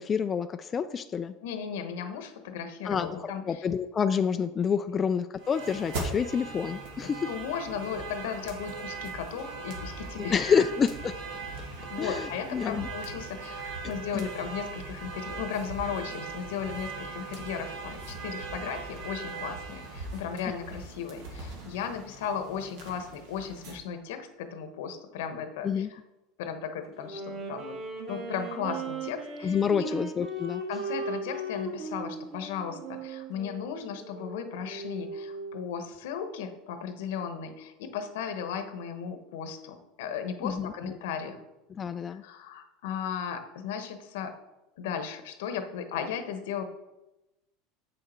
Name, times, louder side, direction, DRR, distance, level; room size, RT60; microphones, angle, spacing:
voice 1, 0.0-1.3 2.8-7.3 10.3-11.1 12.0-12.9 14.1-14.3 25.6-25.9 29.4-30.6 40.4-40.9 41.8-42.2, left 6 dB, 25° left, 9 dB, 0.3 m, -28 dB
voice 2, 1.4-3.7 7.0-10.3 11.6-26.0 26.4-27.8 28.1-29.9 30.7-41.4 42.1-44.3 44.8-46.6, left 7 dB, 80° left, 8 dB, 1.0 m, -36 dB
sound 1, 5.4-23.8, right 3 dB, 75° right, 2.0 m, -39 dB
Wind instrument woodwind instrument, 27.0-35.6, right 2 dB, 45° right, 2.5 m, -38 dB
7.5 x 6.5 x 4.4 m, 0.98 s
supercardioid pair, 130°, 0 cm